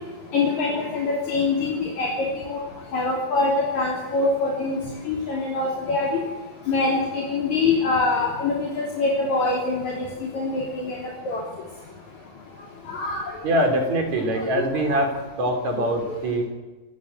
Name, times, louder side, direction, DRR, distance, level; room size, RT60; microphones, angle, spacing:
voice 1, 0.3-2.1 2.5-2.6 2.9-4.8 5.1-6.2 6.7-10.1 10.3-11.0 11.3-11.4 12.9-13.2, left 3 dB, 55° left, -2 dB, 4.5 m, -24 dB
voice 2, 13.4-16.4, right 1 dB, 50° right, 5 dB, 4.9 m, -23 dB
26.5 x 15.0 x 7.9 m, 1.2 s
omnidirectional pair, 4.0 m